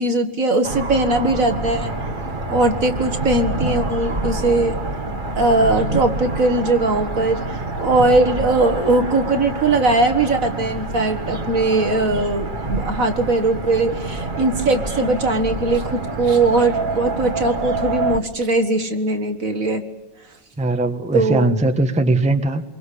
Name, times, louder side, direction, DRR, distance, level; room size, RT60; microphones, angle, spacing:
voice 1, 0.0-1.9 2.5-4.8 5.4-7.4 7.8-19.8 21.1-21.6, right 2 dB, 45° right, 7 dB, 2.0 m, -20 dB
sound 1, 0.6-18.2, right 3 dB, 30° right, 1.6 m, -27 dB
voice 2, 20.6-22.6, right 2 dB, 5° right, 6 dB, 1.2 m, -19 dB
26.0 x 23.5 x 8.5 m, 0.97 s
omnidirectional pair, 2.0 m